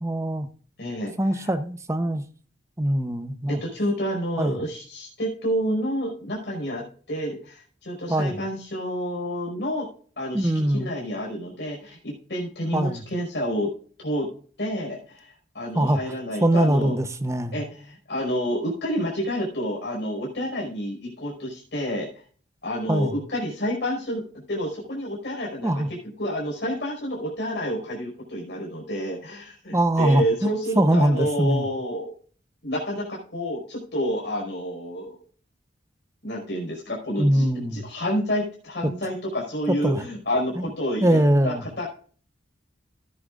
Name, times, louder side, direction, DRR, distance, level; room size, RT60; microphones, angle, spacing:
voice 1, 0.0-0.5 1.2-2.2 2.8-3.6 4.4-4.6 8.1-8.4 10.3-10.9 12.7-13.0 15.8-16.0 16.4-17.6 22.9-23.2 25.6-25.9 29.7-31.7 37.2-37.8 39.8-40.0 41.0-41.6, right 1 dB, 15° right, 0.8 m, -22 dB
voice 2, 0.8-1.5 3.5-9.9 10.2-13.7 14.0-14.3 14.6-16.9 17.5-22.1 22.6-24.2 24.5-32.1 32.6-35.2 36.2-41.9, equal, 60° left, 5.1 m, -29 dB
15.5 x 10.0 x 2.5 m
head